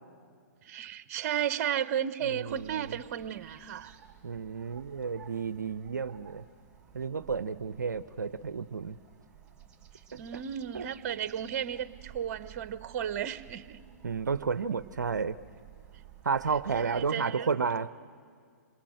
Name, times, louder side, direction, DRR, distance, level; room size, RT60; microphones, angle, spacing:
voice 1, 0.6-4.0 10.1-13.8 16.7-17.5, right 9 dB, 50° right, 14 dB, 1.0 m, -34 dB
voice 2, 2.3-3.0 4.2-6.4 6.9-9.0 10.7-10.9 14.0-15.4 16.2-17.9, right 5 dB, 85° right, 14 dB, 0.6 m, -32 dB
sound 1, 2.5-17.1, right 9 dB, 10° right, 3.8 m, -54 dB
27.5 x 22.0 x 7.8 m, 2.2 s
hypercardioid pair, 120°, 10 cm